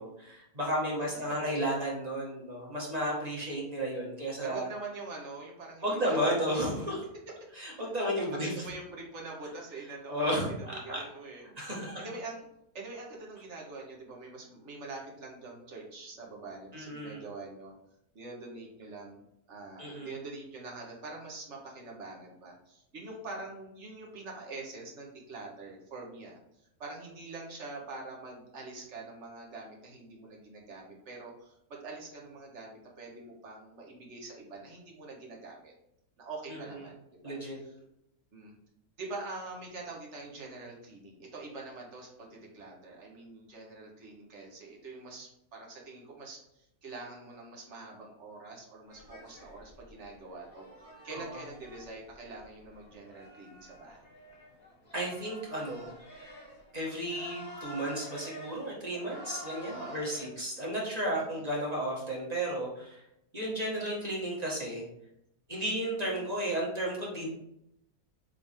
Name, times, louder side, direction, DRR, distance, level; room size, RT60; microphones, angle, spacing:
voice 1, 0.0-4.7 5.8-7.0 7.5-8.5 10.1-11.0 11.6-12.1 16.7-17.2 19.8-20.1 36.5-36.8 37.2-37.6 51.1-51.2 54.9-55.9 56.7-63.0 63.3-64.8 65.5-67.4, equal, 25° right, -4 dB, 1.8 m, -33 dB
voice 2, 1.0-1.7 4.4-6.7 8.3-11.5 12.0-12.4 12.7-17.7 18.2-26.4 26.8-35.7 36.2-37.4 37.6-37.7 38.3-38.5 39.0-50.7 51.0-54.0 59.6-60.4 61.3-61.4, right 3 dB, 50° right, -1 dB, 1.6 m, -45 dB
sound 1, 48.9-60.3, equal, 30° left, 1.6 m, -49 dB
7.6 x 3.6 x 3.6 m, 0.80 s
omnidirectional pair, 1.6 m